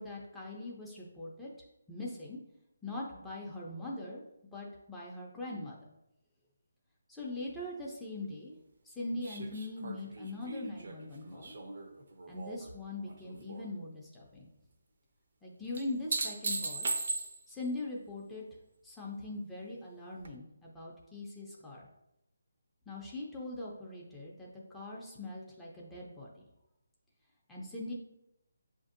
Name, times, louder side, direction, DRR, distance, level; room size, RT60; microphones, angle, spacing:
voice 1, 0.0-1.5 1.9-2.4 2.8-4.2 4.5-5.8 7.1-8.6 8.8-11.6 12.3-14.5 15.4-16.9 17.5-18.4 18.8-21.9 22.9-26.3 27.5-27.9, left 2 dB, 5° left, -6 dB, 0.5 m, -41 dB
sound 1, 9.2-12.7 13.1-13.7 15.8-17.6 20.2-20.3, right 3 dB, 55° right, 0.6 m, -38 dB
7.0 x 2.6 x 2.5 m, 0.85 s
hypercardioid pair, 165°, 0 cm